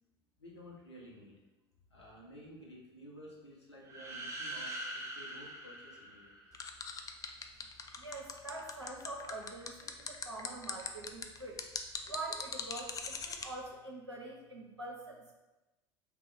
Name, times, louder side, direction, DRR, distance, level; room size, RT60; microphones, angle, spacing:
voice 1, 0.4-1.3 1.9-6.5, equal, 85° left, -4 dB, 0.8 m, -53 dB
sound 1, 3.8-6.8, right 1 dB, 20° right, 1.0 m, -43 dB
sound 2, 6.5-13.5, left 6 dB, 25° left, 0.4 m, -40 dB
voice 2, 8.0-11.6 12.1-15.3, right 2 dB, 90° right, -1 dB, 0.5 m, -44 dB
3.4 x 3.0 x 4.6 m, 1.1 s
figure-of-eight pair, 70°, 14 cm